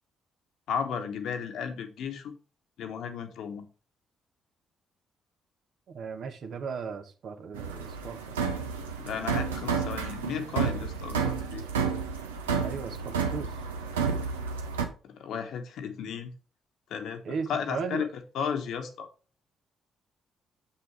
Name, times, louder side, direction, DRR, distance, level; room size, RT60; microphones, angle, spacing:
voice 1, 0.7-2.3 2.8-3.7 9.0-11.6 15.0-16.3 16.9-17.2 17.5-18.1 18.3-19.1, left 7 dB, 60° left, 1.1 m, -34 dB
voice 2, 5.9-8.4 12.6-13.6 17.2-18.1, right 5 dB, 55° right, 1.1 m, -36 dB
sound 1, 7.5-14.8, right 6 dB, 80° right, 0.8 m, -31 dB
7.4 x 5.8 x 3.3 m
figure-of-eight pair, 40°, 0 cm